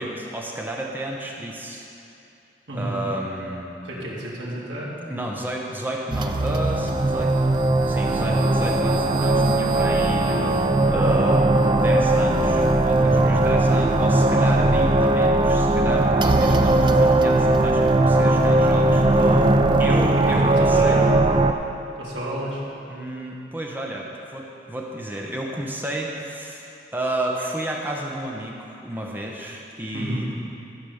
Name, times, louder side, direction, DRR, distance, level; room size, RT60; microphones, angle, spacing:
voice 1, 0.0-1.9 2.7-3.8 5.1-7.5 7.9-10.3 10.9-19.3 19.8-21.0 22.9-30.3, right 1 dB, 10° right, -1 dB, 0.8 m, -31 dB
voice 2, 2.7-3.0 3.8-5.0 10.3-10.5 12.9-13.5 19.2-19.5 20.2-21.0 22.0-22.6 29.9-30.4, right 1 dB, 80° right, -6 dB, 2.5 m, -31 dB
sound 1, 6.1-21.5, right 2 dB, 25° right, 0.4 m, -19 dB
13.0 x 5.0 x 6.9 m, 2.7 s
head